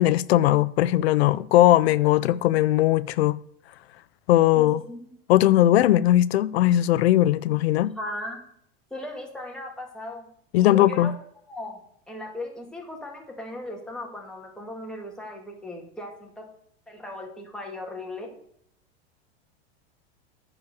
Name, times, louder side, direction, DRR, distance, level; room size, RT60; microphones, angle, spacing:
voice 1, 0.0-3.4 4.3-4.8 5.3-7.9 10.5-11.1, left 14 dB, 90° left, 0.5 m, -19 dB
voice 2, 4.5-5.0 8.0-8.4 8.9-10.3 10.6-11.1 11.5-11.8 12.1-16.5 16.9-18.3, left 1 dB, ahead, 2.2 m, -37 dB
9.6 x 4.9 x 6.8 m
supercardioid pair, 130°, 31 cm